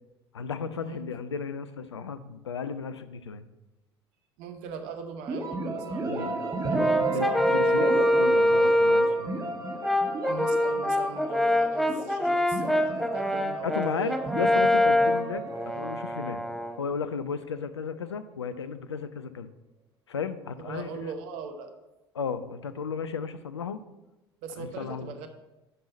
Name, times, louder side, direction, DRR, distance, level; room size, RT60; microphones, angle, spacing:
voice 1, 0.3-3.4 6.0-6.3 7.1-9.4 13.6-15.5 15.8-16.5 16.8-19.5 20.1-21.1 22.1-23.8 24.6-25.1, left 6 dB, 80° left, 12 dB, 0.5 m, -34 dB
voice 2, 4.4-7.9 10.3-14.4 20.7-21.7 24.4-25.3, right 5 dB, 60° right, 6 dB, 1.0 m, -40 dB
sound 1, 5.3-17.0, right 3 dB, 25° right, 1.5 m, -33 dB
Brass instrument, 6.7-9.2 9.8-16.8, left 1 dB, ahead, 0.6 m, -24 dB
10.0 x 5.4 x 4.1 m, 1.0 s
figure-of-eight pair, 65°, 14 cm